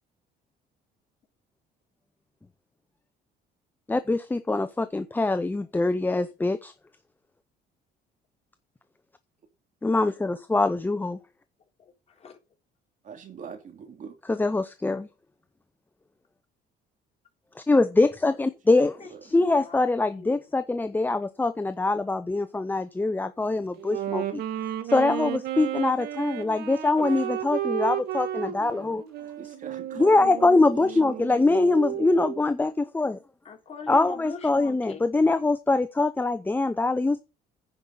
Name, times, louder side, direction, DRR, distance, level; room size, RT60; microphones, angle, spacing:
voice 1, 3.9-6.7 9.8-11.2 14.3-15.1 17.7-19.0 19.3-24.4 24.9-29.0 29.9-33.2 33.9-37.2, left 3 dB, 10° left, 0.6 m, -23 dB
voice 2, 11.8-12.4 19.0-20.4 26.5-26.6 26.9-27.3 33.4-35.1, left 5 dB, 40° left, 3.4 m, -42 dB
voice 3, 13.0-14.1 19.1-19.2 29.4-31.5, right 6 dB, 50° right, 2.7 m, -42 dB
Wind instrument woodwind instrument, 23.8-32.5, right 12 dB, 70° right, 1.9 m, -33 dB
9.9 x 5.5 x 7.5 m
cardioid pair, 110°, 17 cm